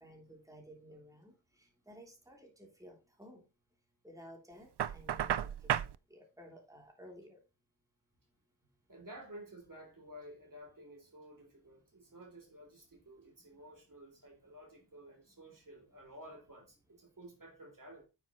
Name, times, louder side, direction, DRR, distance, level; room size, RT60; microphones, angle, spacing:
voice 1, 0.0-1.3 1.9-3.4 4.0-5.5 6.1-7.4, equal, 5° right, 3.2 m, -54 dB
Knock, 4.8-6.0, right 10 dB, 65° right, 0.6 m, -33 dB
voice 2, 8.9-18.0, right 1 dB, 45° right, 3.2 m, -53 dB
9.9 x 7.0 x 3.1 m
wide cardioid pair, 60°, 44 cm